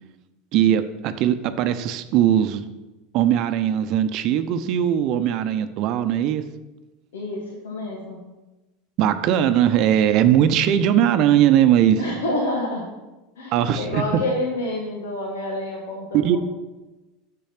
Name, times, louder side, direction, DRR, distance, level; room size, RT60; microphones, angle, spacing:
voice 1, 0.5-2.7 3.1-6.4 9.0-12.0 13.5-14.2 16.1-16.4, right 10 dB, 55° right, 10 dB, 0.7 m, -19 dB
voice 2, 7.1-8.2 12.0-12.9 13.4-16.4, left 1 dB, 85° left, -1 dB, 1.6 m, -28 dB
7.2 x 6.8 x 6.0 m, 1.1 s
hypercardioid pair, 90°, 0 cm